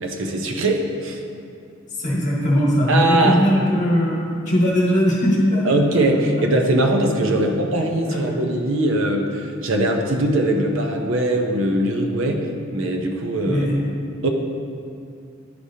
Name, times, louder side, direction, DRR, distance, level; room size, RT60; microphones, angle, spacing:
voice 1, 0.0-1.2 2.9-3.4 5.6-12.5 12.7-13.7 14.2-14.3, right 1 dB, 70° right, 2 dB, 0.6 m, -21 dB
voice 2, 2.0-5.8 7.3-7.4 8.1-8.2 13.4-13.8, equal, 35° left, -5 dB, 1.4 m, -19 dB
10.0 x 4.9 x 2.8 m, 2.4 s
head